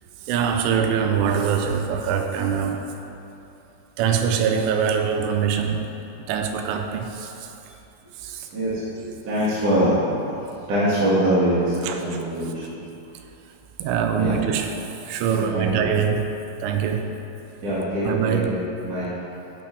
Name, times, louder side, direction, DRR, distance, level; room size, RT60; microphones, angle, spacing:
voice 1, 0.3-2.9 4.0-5.9 6.3-7.5 8.2-8.5 11.8-12.0 13.8-14.7 15.1-17.2 18.0-18.5, right 7 dB, 85° right, 5 dB, 3.0 m, -23 dB
voice 2, 8.5-12.6 14.1-14.3 15.3-15.7 17.6-18.5 18.8-19.1, right 1 dB, 50° right, -11 dB, 2.7 m, -23 dB
15.5 x 8.6 x 3.4 m, 2.9 s
omnidirectional pair, 5.9 m